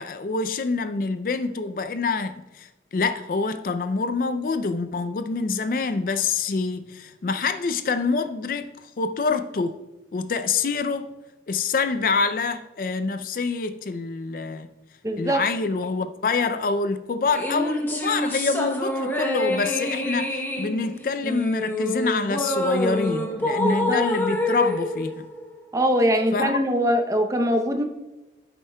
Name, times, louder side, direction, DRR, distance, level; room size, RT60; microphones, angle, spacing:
voice 1, 0.0-9.8 10.1-11.1 11.5-14.7 15.2-25.3 26.3-26.6, left 4 dB, 50° left, 0.4 m, -26 dB
voice 2, 15.0-15.4 23.6-24.0 25.7-27.8, equal, 20° right, 0.7 m, -22 dB
sound 1, 17.3-25.9, left 1 dB, 10° left, 0.9 m, -27 dB
9.9 x 8.1 x 2.2 m
head